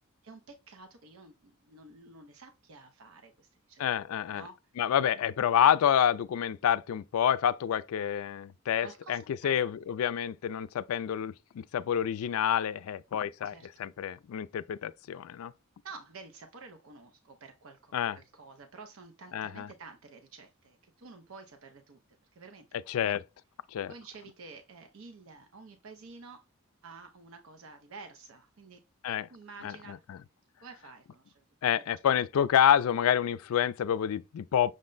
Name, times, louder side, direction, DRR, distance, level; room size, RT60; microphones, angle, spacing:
voice 1, 0.2-3.8 4.3-4.5 8.8-9.7 13.4-13.7 15.8-22.0 22.3-23.2 23.9-26.5 26.8-28.8 29.3-30.0 30.6-31.4 31.7-31.8, right 4 dB, 65° right, 0.6 m, -50 dB
voice 2, 3.8-4.4 4.8-15.5 17.9-18.2 19.3-19.7 22.9-23.2 23.7-23.9 29.0-29.3 29.6-30.2 31.6-34.7, left 9 dB, 80° left, 0.3 m, -28 dB
6.3 x 2.1 x 3.8 m
head